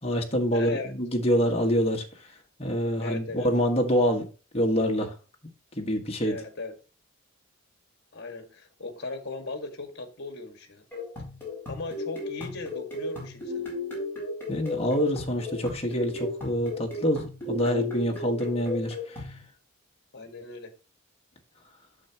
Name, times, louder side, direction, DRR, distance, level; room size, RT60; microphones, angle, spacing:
voice 1, 0.0-2.0 2.6-4.3 4.5-5.1 5.7-6.3 14.5-19.0, equal, 30° left, 1.6 m, -26 dB
voice 2, 0.5-0.9 3.0-3.5 6.2-6.7 8.1-10.9 11.7-13.8 20.1-20.7, left 3 dB, 55° left, 1.8 m, -38 dB
sound 1, 10.9-19.4, left 3 dB, 10° left, 4.3 m, -35 dB
8.5 x 7.1 x 2.9 m
head